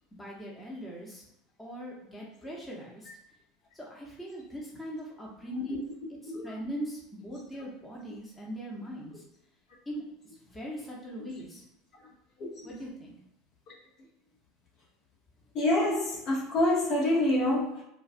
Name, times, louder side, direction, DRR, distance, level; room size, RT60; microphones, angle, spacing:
voice 1, 0.1-1.2 1.6-3.1 3.7-6.2 6.4-9.2 9.9-10.0 10.5-11.6 12.6-13.1, equal, 15° left, -3 dB, 1.0 m, -40 dB
voice 2, 15.5-17.8, left 1 dB, 50° left, -4 dB, 1.2 m, -27 dB
4.5 x 2.4 x 2.2 m, 0.83 s
hypercardioid pair, 85°, 0 cm